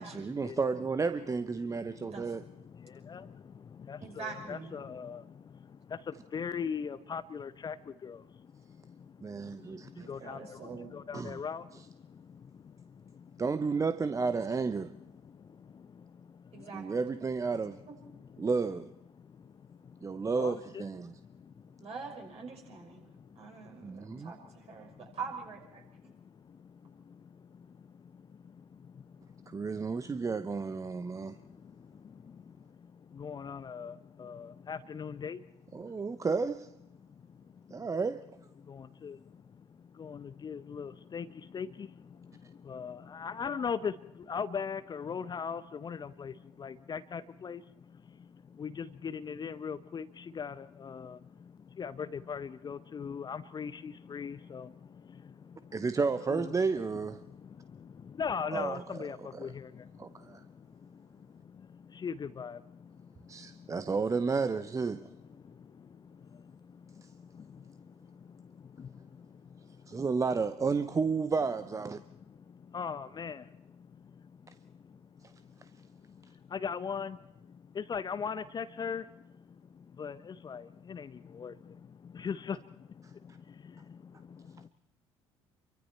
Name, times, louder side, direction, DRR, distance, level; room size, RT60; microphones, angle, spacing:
voice 1, 0.1-2.4 9.2-10.1 11.1-11.4 13.4-14.9 16.7-17.8 18.4-18.9 20.0-21.2 23.8-24.3 29.5-31.4 35.7-36.7 37.7-38.2 55.7-57.2 58.5-58.8 60.0-60.4 63.3-65.1 69.9-72.0, right 4 dB, 20° right, 0.8 m, -32 dB
voice 2, 1.6-13.5 14.9-16.9 17.8-18.5 19.1-21.9 22.5-25.2 25.8-36.3 36.9-37.9 38.6-63.9 65.0-70.1 72.0-84.7, left 6 dB, 30° left, 0.8 m, -42 dB
voice 3, 4.0-4.7 10.0-10.9 14.3-14.7 16.5-16.9 17.9-18.0 20.6-21.1 21.8-23.1 23.4-26.1, right 5 dB, 45° right, 5.8 m, -44 dB
28.0 x 23.5 x 4.5 m
figure-of-eight pair, 55°, 15 cm